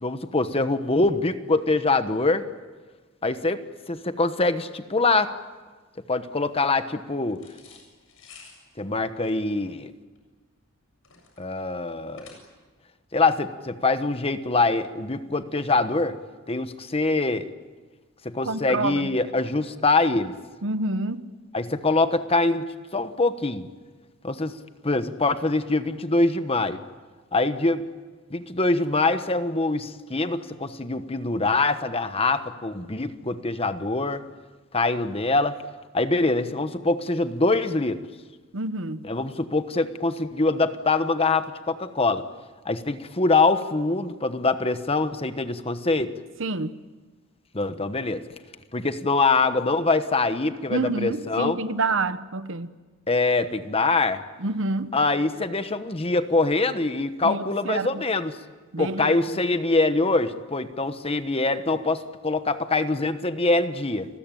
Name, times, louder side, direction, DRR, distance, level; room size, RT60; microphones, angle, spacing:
voice 1, 0.0-2.4 3.2-5.3 6.1-7.4 8.8-9.9 11.4-12.3 13.1-16.2 16.5-17.5 18.2-20.3 21.5-22.7 22.9-23.7 24.2-24.6 24.8-26.8 27.3-27.8 28.3-34.2 34.7-35.6 35.9-38.0 39.0-42.2 42.6-46.1 47.5-48.2 48.7-51.6 53.1-54.2 54.9-58.4 58.8-64.1, left 3 dB, 30° left, 1.2 m, -24 dB
sound 1, 7.4-12.8, left 5 dB, 75° left, 7.7 m, -52 dB
voice 2, 18.4-19.2 20.6-21.3 38.5-39.0 46.4-46.8 50.7-52.7 54.4-54.9 57.2-58.0 58.7-59.2, right 3 dB, 65° right, 1.1 m, -28 dB
30.0 x 20.5 x 9.2 m
head